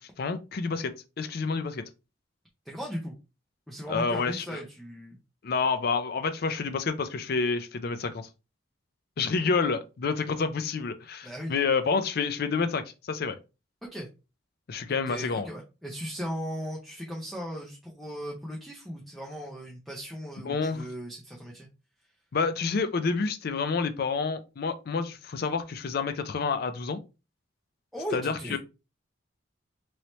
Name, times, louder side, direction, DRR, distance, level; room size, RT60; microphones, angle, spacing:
voice 1, 0.0-1.8 3.9-4.6 5.4-8.3 9.2-13.4 14.7-15.5 20.5-20.9 22.3-27.0 28.1-28.6, left 4 dB, 50° left, 0.4 m, -29 dB
voice 2, 2.7-3.1 3.7-5.2 11.2-11.6 13.9-14.1 14.9-21.7 27.9-28.6, equal, ahead, 0.6 m, -37 dB
3.1 x 2.8 x 3.0 m
head